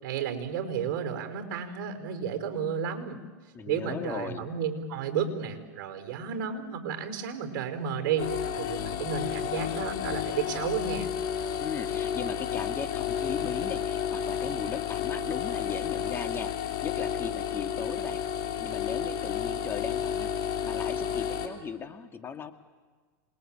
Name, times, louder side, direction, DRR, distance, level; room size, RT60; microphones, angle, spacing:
voice 1, 0.0-3.2 3.7-8.3 8.6-11.1, right 7 dB, 55° right, 6 dB, 4.8 m, -32 dB
voice 2, 3.5-4.5 11.6-18.2 18.6-20.3 20.6-22.5, left 6 dB, 20° left, 6 dB, 2.1 m, -37 dB
sound 1, 8.2-21.5, left 9 dB, 45° left, 3.3 m, -31 dB
27.5 x 21.0 x 8.9 m, 1.4 s
hypercardioid pair, 115°, 10 cm